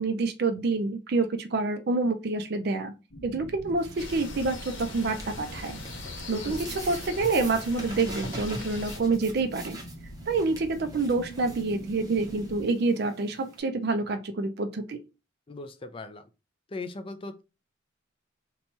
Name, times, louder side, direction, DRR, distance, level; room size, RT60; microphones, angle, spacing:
voice 1, 0.0-2.9 3.2-5.8 6.3-9.8 10.3-15.0, right 3 dB, 55° right, 0.4 m, -27 dB
sound 1, 3.1-12.6, right 1 dB, 65° left, 1.0 m, -45 dB
sound 2, 3.8-13.6, right 1 dB, 20° right, 0.7 m, -45 dB
sound 3, 4.0-9.0, left 2 dB, 90° left, 1.0 m, -40 dB
voice 2, 6.3-6.8 15.5-16.2 16.7-17.4, left 2 dB, 25° left, 0.4 m, -39 dB
2.9 x 2.2 x 4.0 m
head